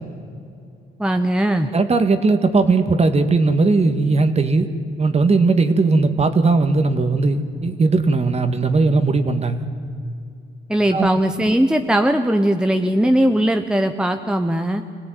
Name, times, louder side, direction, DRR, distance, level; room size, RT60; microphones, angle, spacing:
voice 1, 1.0-1.7 10.7-14.8, right 1 dB, 5° right, 6 dB, 1.1 m, -19 dB
voice 2, 1.7-4.7 5.0-9.7 10.9-11.1, right 3 dB, 30° right, 8 dB, 1.9 m, -18 dB
25.5 x 17.5 x 9.4 m, 2.4 s
cardioid pair, 90°, 20 cm